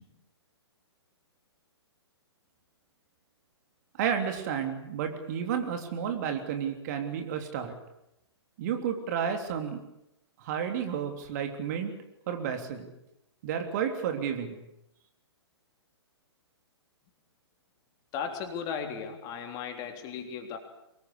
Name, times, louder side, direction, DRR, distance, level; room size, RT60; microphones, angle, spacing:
voice 1, 4.0-7.8 8.6-9.8 10.4-11.9 12.3-12.9 13.4-14.6, right 8 dB, 40° right, 5 dB, 3.4 m, -31 dB
voice 2, 18.1-20.6, left 6 dB, 25° left, 5 dB, 3.5 m, -36 dB
24.0 x 20.5 x 8.5 m, 0.84 s
figure-of-eight pair, 120°, 14 cm